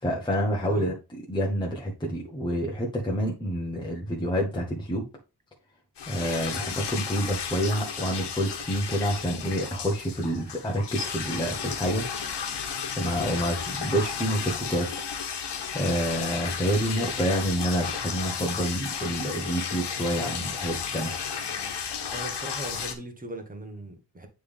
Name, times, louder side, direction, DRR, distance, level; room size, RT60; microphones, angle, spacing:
voice 1, 0.0-0.9 1.3-5.1 6.1-12.0 13.0-14.9 15.7-21.2, equal, 10° left, 1.1 m, -28 dB
sound 1, 6.0-22.9, left 6 dB, 80° left, 1.1 m, -33 dB
voice 2, 22.1-24.3, right 1 dB, 20° right, 1.2 m, -38 dB
9.4 x 3.4 x 3.4 m
wide cardioid pair, 165°, 41 cm